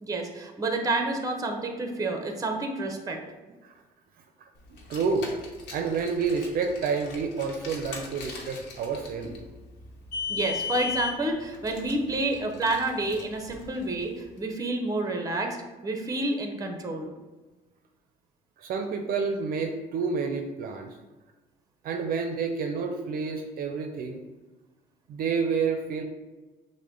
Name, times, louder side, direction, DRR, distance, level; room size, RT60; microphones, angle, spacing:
voice 1, 0.0-3.2 10.3-15.6 15.8-17.1, right 2 dB, 20° right, 4 dB, 0.7 m, -29 dB
Car, 4.7-14.2, left 5 dB, 85° left, 0.9 m, -38 dB
voice 2, 4.9-5.3 5.7-9.3 18.6-20.9 21.8-24.2 25.1-26.0, right 5 dB, 60° right, 4 dB, 0.5 m, -29 dB
6.3 x 2.1 x 3.8 m, 1.2 s
cardioid pair, 110°, 17 cm